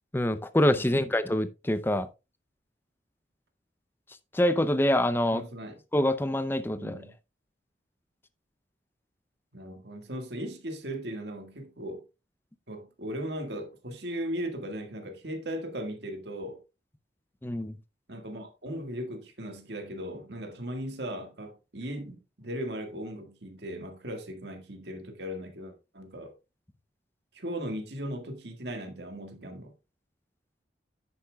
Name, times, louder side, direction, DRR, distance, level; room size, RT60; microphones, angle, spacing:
voice 1, 0.1-2.1 4.3-5.4 5.9-7.0 17.4-17.7, left 1 dB, 10° left, 0.5 m, -25 dB
voice 2, 0.8-1.1 5.3-5.8 6.8-7.1 9.5-12.0 12.7-16.6 18.1-26.3 27.3-29.7, equal, 65° right, 1.8 m, -37 dB
10.5 x 8.4 x 2.3 m
head